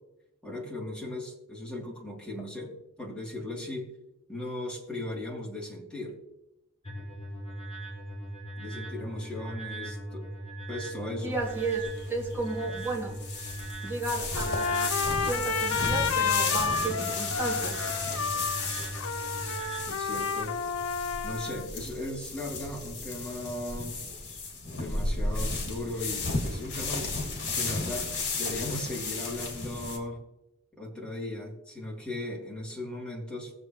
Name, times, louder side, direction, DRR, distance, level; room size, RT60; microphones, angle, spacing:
voice 1, 0.4-3.9 4.3-6.2 8.6-10.3 10.7-11.4 19.9-20.6 21.0-24.0 24.8-27.1 27.4-30.2 30.7-33.5, left 1 dB, 5° left, -4 dB, 3.3 m, -37 dB
sound 1, 6.8-19.8, right 1 dB, 30° left, 4.9 m, -39 dB
voice 2, 11.2-13.2 13.8-14.9 15.2-17.8, right 3 dB, 10° right, -4 dB, 2.7 m, -33 dB
sound 2, 11.3-30.0, left 3 dB, 55° left, 2.9 m, -34 dB
Trumpet, 14.3-21.7, left 5 dB, 90° left, 0.8 m, -31 dB
20.5 x 7.6 x 3.2 m, 0.87 s
head